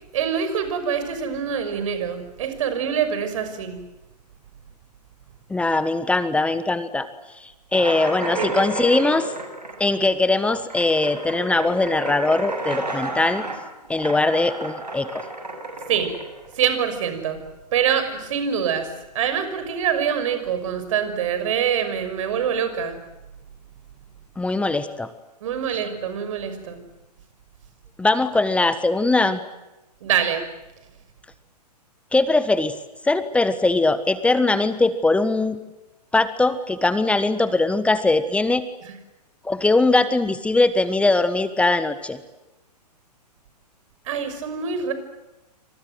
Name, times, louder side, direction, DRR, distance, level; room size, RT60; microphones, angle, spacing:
voice 1, 0.1-3.8 8.2-8.6 15.9-16.2 16.5-17.4 17.7-23.0 25.4-26.8 30.0-30.5 38.8-38.9 44.1-44.9, right 8 dB, 50° right, 9 dB, 6.1 m, -25 dB
voice 2, 5.5-7.1 7.7-9.3 9.8-13.4 13.9-15.2 24.4-25.1 28.0-29.4 32.1-32.7 33.1-35.6 36.1-38.6 39.4-42.2, left 2 dB, 5° left, 13 dB, 1.3 m, -21 dB
sound 1, 7.7-17.1, right 2 dB, 85° right, 7.8 m, -31 dB
28.5 x 26.0 x 7.9 m, 1.0 s
figure-of-eight pair, 115°, 21 cm